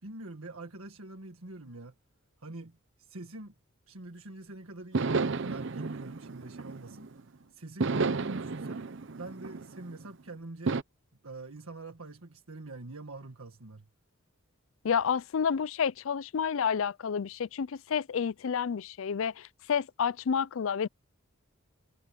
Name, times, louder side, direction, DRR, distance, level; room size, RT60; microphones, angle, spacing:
voice 1, 0.0-1.9 2.4-3.5 3.9-8.8 9.1-10.8 11.2-13.9, right 2 dB, 75° right, 1.7 m, -45 dB
sound 1, 4.9-7.2 7.8-10.1 10.7-10.8, right 4 dB, 60° right, 0.7 m, -32 dB
voice 2, 14.8-20.9, left 7 dB, 65° left, 0.4 m, -30 dB
head